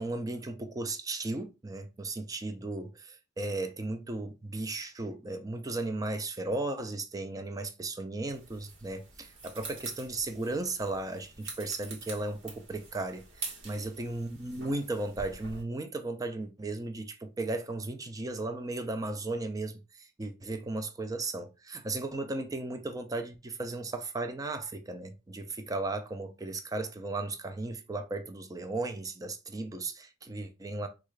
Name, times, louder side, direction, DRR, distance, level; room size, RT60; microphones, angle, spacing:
voice 1, 0.0-19.8 20.2-30.9, right 2 dB, 20° right, 0.4 m, -35 dB
sound 1, 8.3-15.6, right 3 dB, 85° right, 1.2 m, -46 dB
3.7 x 2.4 x 3.2 m
head